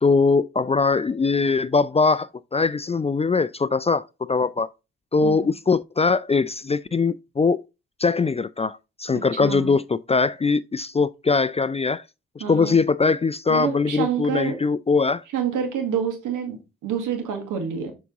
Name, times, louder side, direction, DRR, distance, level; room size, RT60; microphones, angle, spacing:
voice 1, 0.0-4.7 5.1-7.6 8.0-12.0 12.4-15.2, left 4 dB, 20° left, 0.4 m, -21 dB
voice 2, 9.1-9.7 12.4-12.8 13.5-14.6 15.3-17.9, right 7 dB, 80° right, 1.8 m, -28 dB
6.9 x 4.1 x 3.6 m
hypercardioid pair, 45°, 31 cm